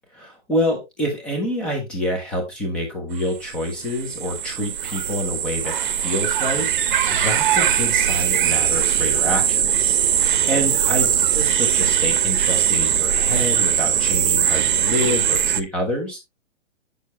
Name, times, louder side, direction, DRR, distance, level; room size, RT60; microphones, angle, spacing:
voice 1, 0.1-11.1 11.3-16.3, left 1 dB, 5° left, 0 dB, 0.4 m, -27 dB
sound 1, 3.2-3.3 3.5-15.6, right 9 dB, 40° right, 0.8 m, -20 dB
8.1 x 6.5 x 2.9 m, 0.22 s
hypercardioid pair, 150°, 38 cm